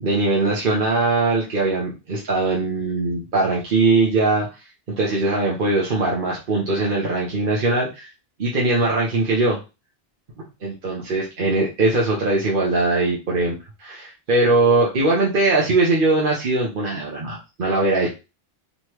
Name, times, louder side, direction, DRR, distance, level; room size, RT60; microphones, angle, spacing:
voice 1, 0.0-4.5 5.0-8.1 8.4-9.6 10.6-18.1, right 2 dB, 55° right, -3 dB, 1.1 m, -21 dB
4.0 x 3.2 x 3.0 m, 0.27 s
omnidirectional pair, 1.0 m